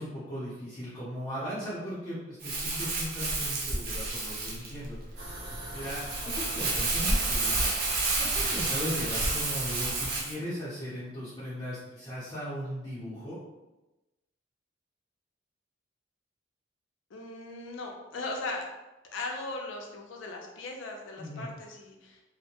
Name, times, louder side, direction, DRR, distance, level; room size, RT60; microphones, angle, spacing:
voice 1, 0.0-5.0 5.7-7.7 8.2-13.4 21.2-21.5, equal, 20° left, -10 dB, 0.6 m, -38 dB
Crumpling crinkling, 2.4-10.3, right 2 dB, 45° right, 0.5 m, -30 dB
sound 1, 5.2-10.2, right 1 dB, 90° right, 0.8 m, -42 dB
voice 2, 17.1-18.7 19.1-22.2, left 2 dB, 75° left, 1 dB, 0.5 m, -38 dB
2.5 x 2.1 x 2.8 m, 1.0 s
head